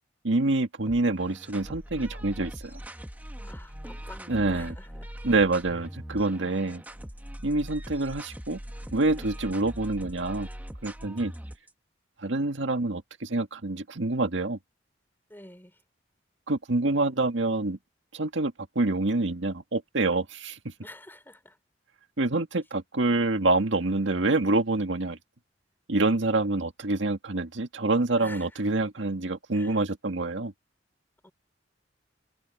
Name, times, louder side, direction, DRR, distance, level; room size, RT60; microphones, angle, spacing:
voice 1, 0.2-2.8 4.3-4.7 5.2-6.8 7.4-8.6 8.9-10.5 10.8-11.3 12.2-14.6 16.5-17.8 18.1-20.7 22.2-25.2 25.9-30.5, right 2 dB, 85° right, 1.8 m, -26 dB
sound 1, 0.9-11.7, equal, 10° right, 1.2 m, -41 dB
voice 2, 3.4-5.1 5.7-5.8 11.1-11.2 15.3-15.8 20.8-21.6 28.2-28.6 29.5-29.8 31.2-31.3, left 1 dB, 10° left, 4.3 m, -48 dB
head